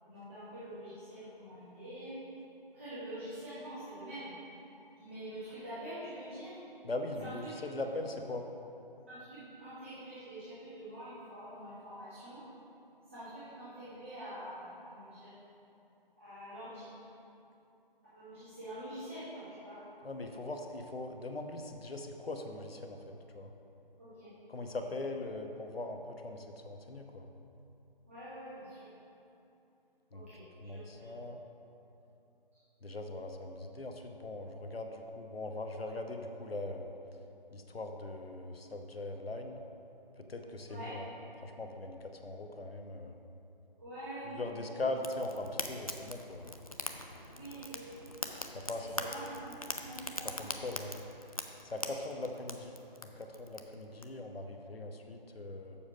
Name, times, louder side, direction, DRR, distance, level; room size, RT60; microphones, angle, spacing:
voice 1, 0.0-2.2 2.7-4.3 5.0-6.5 7.2-7.6 9.1-12.4 13.1-15.3 16.2-16.9 18.1-19.8 24.0-24.3 28.1-28.8 30.1-30.4 30.7-31.1 40.7-41.0 43.8-44.5 47.3-48.1 49.0-49.5 49.8-50.4, right 1 dB, 15° right, -14 dB, 1.0 m, -45 dB
voice 2, 6.8-8.4 20.0-23.5 24.5-27.3 30.1-30.2 30.6-31.4 32.8-36.9 37.5-39.6 40.2-41.1 41.4-43.2 44.2-46.5 48.5-49.0 50.2-50.9 51.6-52.7 53.2-55.8, left 2 dB, 85° left, 4 dB, 1.0 m, -40 dB
Fire, 45.0-54.0, left 1 dB, 40° left, 0.4 m, -43 dB
7.1 x 6.4 x 5.2 m, 2.8 s
figure-of-eight pair, 170°, 29 cm